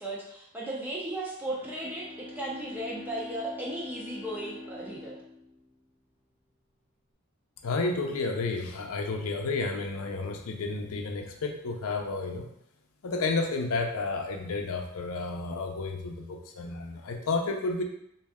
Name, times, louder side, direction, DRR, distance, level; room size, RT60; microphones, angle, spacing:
voice 1, 0.0-5.2, right 1 dB, 10° right, -5 dB, 0.5 m, -36 dB
Bowed string instrument, 1.4-6.4, left 2 dB, 35° left, 0.7 m, -45 dB
voice 2, 7.6-12.5 13.0-17.8, left 3 dB, 70° left, 4 dB, 0.5 m, -31 dB
3.2 x 2.6 x 3.5 m, 0.77 s
head